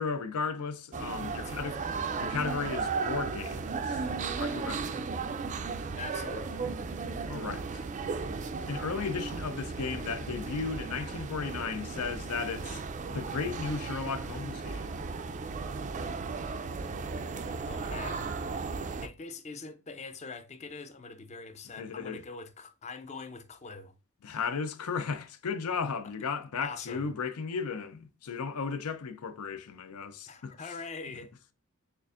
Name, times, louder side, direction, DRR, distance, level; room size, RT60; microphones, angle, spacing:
voice 1, 0.0-1.8 2.2-4.1 4.4-5.0 7.3-7.7 8.7-12.8 13.1-15.0 21.8-22.2 24.2-30.5, left 5 dB, 80° left, 0.5 m, -35 dB
sound 1, 0.9-19.1, right 4 dB, 35° right, 0.3 m, -35 dB
voice 2, 1.4-1.9 6.0-6.7 17.7-18.2 19.0-23.9 26.6-27.1 30.3-31.3, left 4 dB, 30° left, 0.5 m, -43 dB
6.6 x 2.5 x 2.4 m
head